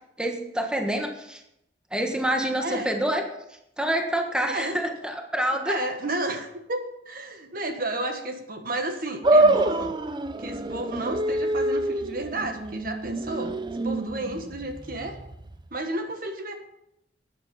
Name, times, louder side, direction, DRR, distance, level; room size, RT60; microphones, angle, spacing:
voice 1, 0.2-1.4 1.9-3.2 3.8-5.7 9.5-9.6, right 1 dB, 5° right, 3 dB, 1.4 m, -27 dB
voice 2, 2.6-2.9 4.5-4.8 5.6-9.9 10.4-13.6 13.8-15.2 15.7-16.6, right 1 dB, 55° right, 5 dB, 1.4 m, -32 dB
sound 1, 9.2-15.7, right 2 dB, 25° right, 0.5 m, -25 dB
12.5 x 9.3 x 5.4 m, 0.82 s
head